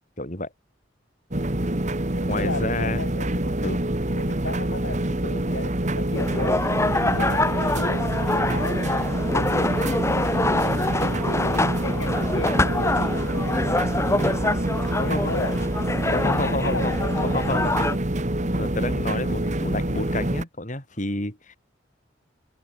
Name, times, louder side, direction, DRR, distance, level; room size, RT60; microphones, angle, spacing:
voice 1, 0.2-0.5 2.3-3.0 3.6-3.8 7.0-7.3 11.1-11.2 14.8-15.3 16.1-17.0 17.3-18.0 18.4-21.6, left 2 dB, 40° left, 5.7 m, -30 dB
sound 1, 1.3-20.4, right 1 dB, 40° right, 1.8 m, -26 dB
voice 2, 2.1-6.7 7.2-9.7 11.0-13.8 15.0-15.7 16.0-17.5, left 2 dB, 85° left, 5.5 m, -36 dB
sound 2, 6.2-18.0, left 2 dB, 15° left, 1.0 m, -26 dB
head